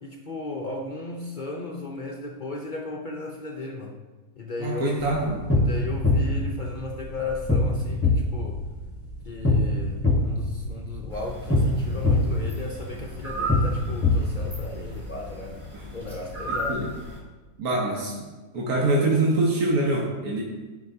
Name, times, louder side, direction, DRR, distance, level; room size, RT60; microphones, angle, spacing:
voice 1, 0.0-4.0 4.4-5.0 5.6-8.6 9.2-15.6 15.9-16.9, left 3 dB, 45° left, 0 dB, 0.6 m, -35 dB
voice 2, 4.6-5.4 15.7-15.8 16.7-16.9 17.6-18.1 18.5-20.4, right 2 dB, 65° right, -3 dB, 1.6 m, -24 dB
sound 1, 5.1-14.9, left 2 dB, 10° left, 1.0 m, -25 dB
sound 2, 11.1-17.2, equal, 20° right, 2.3 m, -36 dB
14.5 x 5.1 x 2.7 m, 1.3 s
omnidirectional pair, 1.7 m